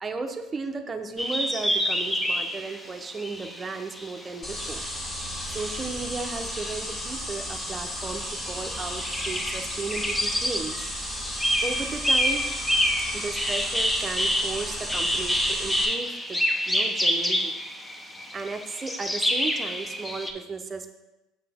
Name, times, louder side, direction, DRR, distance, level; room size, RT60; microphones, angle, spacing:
voice 1, 0.0-4.8 5.5-10.9 11.6-12.5 13.1-17.6 18.3-20.9, right 4 dB, 25° right, 5 dB, 0.7 m, -35 dB
sound 1, 1.2-7.0 7.4-20.3, equal, 10° left, 0.7 m, -28 dB
sound 2, 4.4-15.9, left 1 dB, 25° left, 1.5 m, -34 dB
6.3 x 5.8 x 3.5 m, 0.98 s
supercardioid pair, 85°, 0 cm